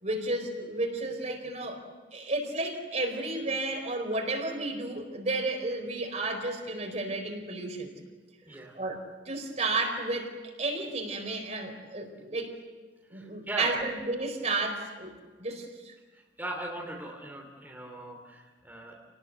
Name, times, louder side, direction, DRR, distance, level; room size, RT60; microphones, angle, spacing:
voice 1, 0.0-1.8 2.1-7.9 8.7-9.0 9.3-12.5 13.1-15.1 15.4-15.9, right 2 dB, 40° right, 4 dB, 4.4 m, -32 dB
voice 2, 13.1-13.8 16.1-18.9, right 2 dB, 10° right, -1 dB, 3.0 m, -39 dB
29.5 x 19.0 x 8.1 m, 1.4 s
head